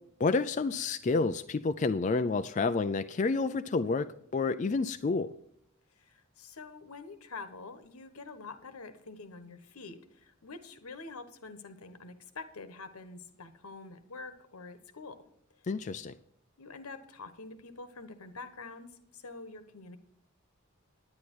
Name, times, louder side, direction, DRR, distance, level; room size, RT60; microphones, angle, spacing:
voice 1, 0.2-4.1 4.3-5.3 15.7-16.1, left 4 dB, 35° left, 10 dB, 0.3 m, -29 dB
voice 2, 6.0-15.2 16.6-20.0, left 3 dB, 85° left, 10 dB, 1.2 m, -46 dB
10.0 x 9.7 x 4.6 m, 0.73 s
head